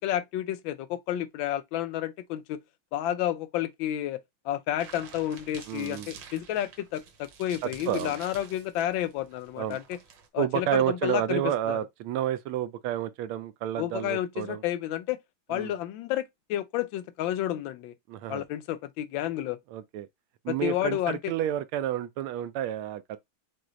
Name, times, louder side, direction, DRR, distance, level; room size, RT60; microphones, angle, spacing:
voice 1, 0.0-2.6 2.9-4.2 4.4-10.0 10.3-11.8 13.8-15.2 15.5-17.9 18.3-19.6 20.5-21.3, left 12 dB, 70° left, 1.3 m, -31 dB
sound 1, 4.8-10.3, right 6 dB, 65° right, 1.5 m, -49 dB
voice 2, 5.7-6.1 7.6-8.2 9.6-9.8 10.4-14.6 15.5-15.7 18.1-18.5 19.7-20.1 20.4-23.2, right 11 dB, 80° right, 1.5 m, -30 dB
6.2 x 2.1 x 3.8 m
omnidirectional pair, 2.3 m